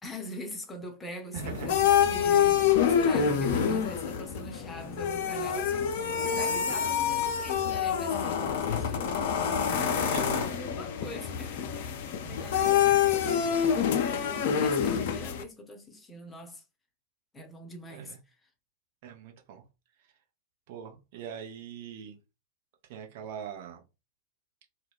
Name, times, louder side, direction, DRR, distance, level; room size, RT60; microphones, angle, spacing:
voice 1, 0.0-9.2 9.6-16.6 17.3-18.2, left 2 dB, 15° left, 0.7 m, -43 dB
voice 2, 1.3-1.7 3.2-3.6 9.7-10.5 12.2-12.5 17.9-18.2 19.0-19.6 20.7-22.2 22.9-23.8, right 8 dB, 50° right, 0.7 m, -41 dB
sound 1, 1.4-15.4, left 8 dB, 50° left, 0.4 m, -27 dB
2.2 x 2.1 x 3.4 m
figure-of-eight pair, 90°, 0 cm